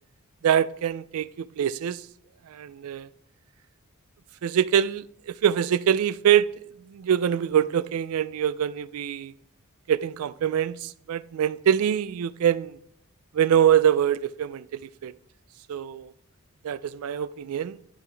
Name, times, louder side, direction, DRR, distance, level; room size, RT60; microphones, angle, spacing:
voice 1, 0.4-1.3 1.6-2.0 2.5-3.1 4.4-6.5 6.9-9.3 9.9-12.8 13.3-15.1 15.7-16.1 16.6-17.8, right 9 dB, 75° right, 0.3 m, -24 dB
10.5 x 4.9 x 3.3 m
head